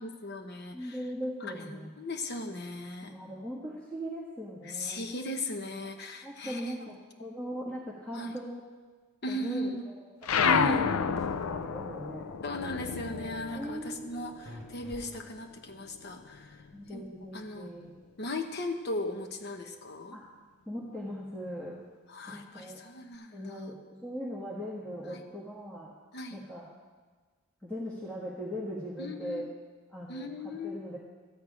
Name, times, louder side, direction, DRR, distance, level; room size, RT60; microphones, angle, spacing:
voice 1, 0.0-1.0 1.4-3.2 4.6-6.8 8.1-8.4 9.2-9.8 10.4-11.0 12.4-16.6 16.9-17.0 17.3-17.7 18.2-20.2 22.1-23.7 25.1-25.2 26.1-26.4 29.0-29.5 30.1-30.9, left 1 dB, 50° left, 5 dB, 1.0 m, -37 dB
voice 2, 0.7-2.0 3.0-5.0 6.2-8.7 9.3-10.1 11.4-12.3 13.5-14.5 16.7-18.0 20.1-20.2 20.6-21.8 22.3-22.8 23.3-25.9 26.3-26.7 27.6-29.5 29.9-31.0, equal, 5° left, -6 dB, 1.4 m, -40 dB
sound 1, 10.2-15.1 15.4-16.9, left 6 dB, 85° left, 0.5 m, -31 dB
sound 2, 10.7-11.3 14.5-15.6, right 1 dB, 30° right, 1.4 m, -48 dB
13.5 x 4.7 x 8.8 m, 1.4 s
head